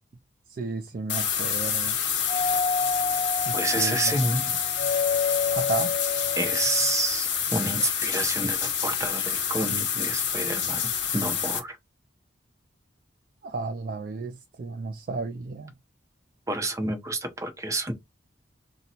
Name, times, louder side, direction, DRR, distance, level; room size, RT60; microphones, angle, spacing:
voice 1, 0.5-1.9 3.5-4.2 5.5-5.9 13.4-15.7, right 3 dB, 45° right, 0.3 m, -33 dB
sound 1, 1.1-11.6, left 7 dB, 65° left, 1.0 m, -28 dB
Doorbell, 2.3-7.1, left 5 dB, 45° left, 0.7 m, -29 dB
voice 2, 3.5-4.5 6.4-11.8 16.5-17.9, right 2 dB, 15° right, 0.7 m, -29 dB
2.8 x 2.2 x 3.9 m
head